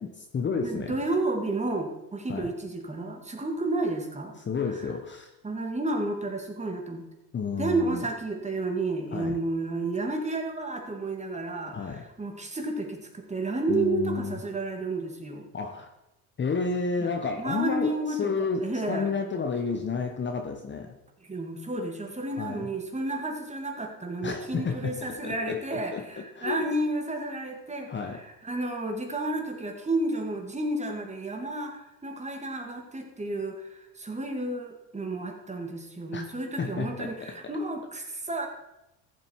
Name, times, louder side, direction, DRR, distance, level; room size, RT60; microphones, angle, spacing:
voice 1, 0.0-1.0 2.3-2.5 4.4-5.3 7.3-8.1 9.1-9.4 11.7-12.0 13.7-14.4 15.5-15.9 16.4-21.0 22.4-22.7 24.2-26.7 27.9-28.2 36.1-36.2 36.6-37.5, left 5 dB, 25° left, 4 dB, 1.2 m, -31 dB
voice 2, 0.6-4.4 5.4-7.0 7.6-15.5 17.4-18.3 18.6-19.1 21.3-38.5, right 2 dB, 15° right, 3 dB, 2.4 m, -31 dB
14.5 x 7.5 x 4.6 m, 0.90 s
supercardioid pair, 95°, 42 cm